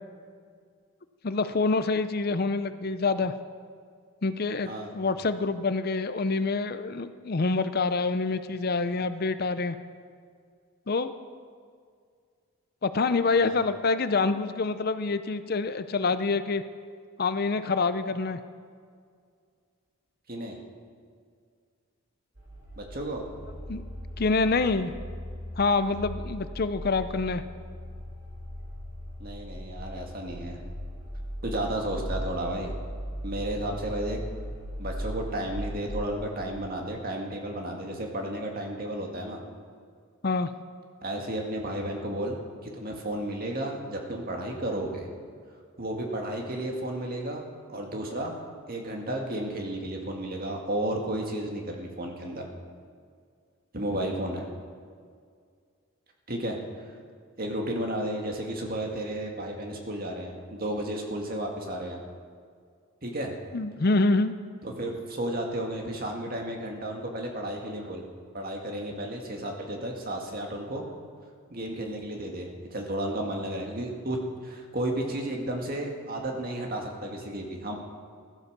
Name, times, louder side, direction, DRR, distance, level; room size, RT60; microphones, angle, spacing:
voice 1, 1.2-3.3 4.2-9.8 10.9-11.1 12.8-16.6 17.2-18.4 23.7-23.8 24.2-24.9 25.6-27.4 40.2-40.5 63.5-64.3, left 3 dB, 45° left, 11 dB, 0.5 m, -26 dB
voice 2, 20.3-20.6 22.8-23.2 29.2-30.6 31.4-32.8 33.2-34.2 34.8-39.4 41.0-42.4 42.6-45.1 45.8-47.4 47.7-48.3 48.7-52.5 53.7-54.5 56.3-56.6 57.4-62.0 63.0-63.3 64.6-68.0 68.3-70.8 71.5-77.7, right 1 dB, 45° right, 1 dB, 2.0 m, -33 dB
sound 1, 22.3-36.6, equal, 65° right, 4.0 m, -38 dB
15.5 x 12.5 x 6.7 m, 2.1 s
head